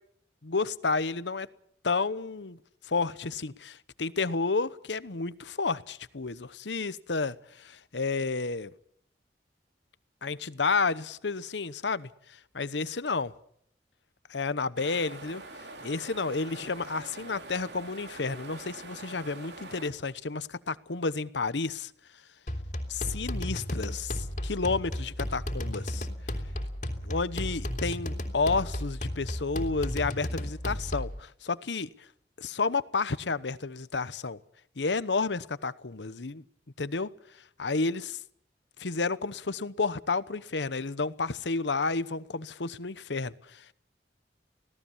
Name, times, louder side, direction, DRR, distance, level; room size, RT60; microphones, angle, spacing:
voice 1, 0.4-1.5 1.8-2.6 2.9-8.7 10.2-12.1 12.6-13.3 14.3-15.4 15.8-21.9 22.9-26.1 27.0-31.9 32.4-34.4 34.8-36.4 36.8-37.1 37.6-38.2 38.8-43.7, left 4 dB, 90° left, 1.0 m, -31 dB
sound 1, 14.8-19.9, right 2 dB, 75° right, 3.2 m, -45 dB
sound 2, 22.5-31.2, left 1 dB, 45° left, 3.1 m, -34 dB
26.0 x 17.5 x 7.2 m
head